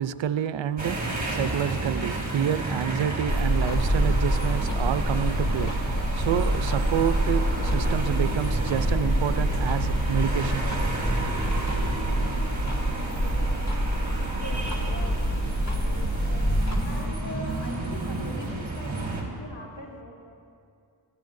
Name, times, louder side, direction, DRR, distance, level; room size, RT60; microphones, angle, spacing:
voice 1, 0.0-10.7, right 9 dB, 75° right, 12 dB, 0.6 m, -28 dB
sound 1, 0.8-19.2, right 2 dB, 20° right, 4.0 m, -31 dB
sound 2, 3.3-17.0, equal, 35° left, 2.3 m, -26 dB
voice 2, 14.3-14.9 16.8-20.1, left 1 dB, 65° left, -2 dB, 3.4 m, -41 dB
25.5 x 17.0 x 2.6 m, 2.4 s
cardioid pair, 80°, 46 cm